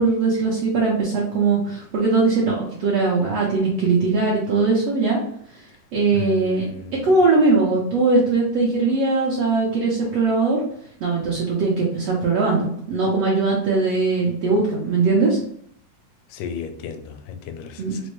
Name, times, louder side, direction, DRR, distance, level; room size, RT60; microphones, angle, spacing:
voice 1, 0.0-5.2 5.9-6.6 6.9-10.6 11.0-15.4 17.8-17.9, right 3 dB, 70° right, -4 dB, 1.5 m, -20 dB
voice 2, 6.1-6.9 16.3-18.0, left 7 dB, 80° left, 7 dB, 2.1 m, -34 dB
6.2 x 2.1 x 3.1 m, 0.65 s
omnidirectional pair, 3.7 m